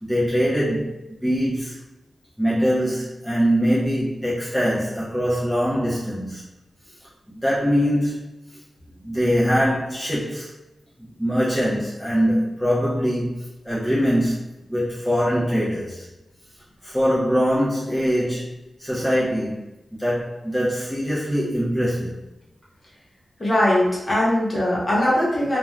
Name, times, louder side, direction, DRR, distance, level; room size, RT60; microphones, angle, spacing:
voice 1, 0.0-1.8 2.4-6.4 7.3-8.3 9.0-10.5 11.0-14.4 14.7-16.1 16.8-18.5 18.8-19.7 19.9-22.1, equal, ahead, 0.6 m, -23 dB
voice 2, 23.4-25.6, left 1 dB, 35° left, 1.0 m, -20 dB
2.4 x 2.2 x 3.2 m
wide cardioid pair, 140°, 0 cm